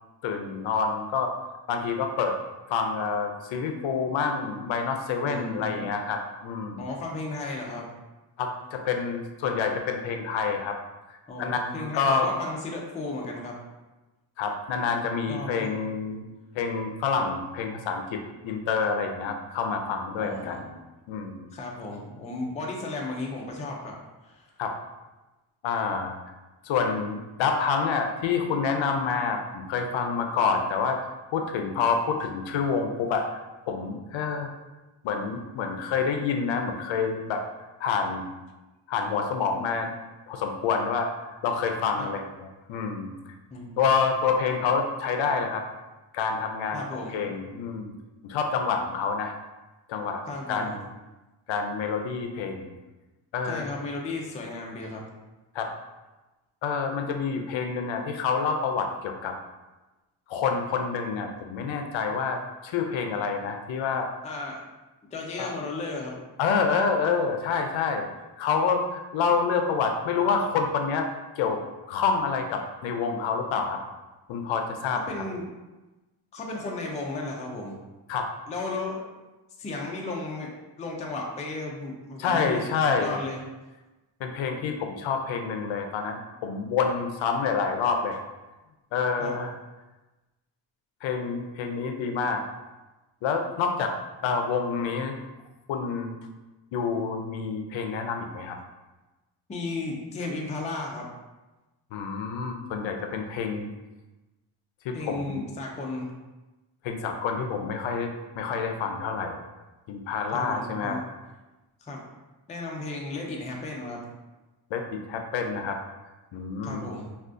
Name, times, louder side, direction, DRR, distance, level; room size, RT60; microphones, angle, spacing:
voice 1, 0.2-1.3 1.7-2.4 2.7-6.9 8.4-10.8 11.4-12.3 14.4-16.2 16.5-20.7 21.1-21.5 24.6-24.8 25.6-26.2 26.6-31.0 31.3-33.4 33.7-34.5 35.0-37.4 37.8-38.3 38.9-39.9 40.3-43.3 43.8-45.6 46.1-46.8 47.1-47.9 48.2-49.3 49.9-50.9 51.5-52.7 53.3-53.8 55.5-55.7 56.6-59.3 60.3-64.1 65.4-65.5 66.4-68.1 68.4-71.1 71.4-71.6 71.9-73.8 74.3-75.0 78.1-78.3 82.2-83.2 84.2-88.2 88.9-89.5 91.0-92.4 93.2-93.9 94.2-95.2 95.7-96.2 96.7-98.6 101.9-103.7 104.8-105.5 106.8-109.4 109.9-111.0 114.7-115.8 116.3-116.9, left 5 dB, 75° left, 5 dB, 0.5 m, -28 dB
voice 2, 5.2-5.8 6.8-7.9 11.3-13.6 15.3-15.9 20.2-20.7 21.5-23.9 24.2-24.5 42.0-42.1 43.5-43.8 46.7-47.2 50.3-50.7 53.4-55.0 64.2-64.6 65.1-66.2 75.1-75.5 76.3-77.8 78.5-79.0 79.6-80.5 80.8-82.7 83.0-83.4 89.2-89.4 99.5-101.1 104.9-106.1 110.3-111.0 111.8-112.0 112.5-114.0 116.6-117.1, left 2 dB, 15° left, -1 dB, 0.3 m, -34 dB
3.5 x 2.4 x 2.5 m, 1.1 s
cardioid pair, 130°, 46 cm